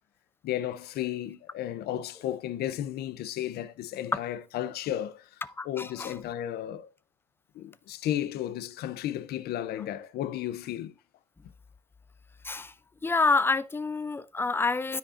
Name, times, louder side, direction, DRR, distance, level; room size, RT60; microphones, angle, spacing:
voice 1, 0.4-6.9 7.5-10.9, left 12 dB, 70° left, 0.7 m, -34 dB
voice 2, 5.6-6.1 12.4-12.7 13.0-15.0, left 3 dB, 15° left, 0.4 m, -27 dB
13.0 x 4.9 x 2.6 m
cardioid pair, 110°, 17 cm